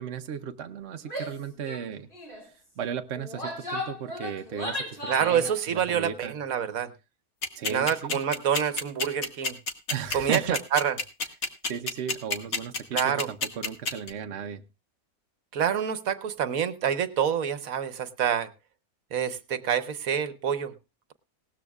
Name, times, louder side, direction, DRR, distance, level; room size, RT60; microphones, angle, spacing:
voice 1, 0.0-2.1 2.4-6.4 7.5-8.2 9.9-10.6 11.6-14.6, right 7 dB, 55° right, 6 dB, 1.0 m, -35 dB
Female speech woman speaking / Yell, 1.0-1.4 1.7-1.8 2.1-2.4 3.1-5.5, left 1 dB, 35° left, 5.4 m, -35 dB
voice 2, 5.1-6.9 7.7-9.6 10.1-10.4 10.7-10.9 12.9-13.3 15.5-18.5 19.1-20.7, right 8 dB, 70° right, 10 dB, 1.3 m, -27 dB
sound 1, 7.4-14.1, left 4 dB, 70° left, 2.1 m, -28 dB
18.5 x 13.5 x 2.4 m, 0.28 s
omnidirectional pair, 1.5 m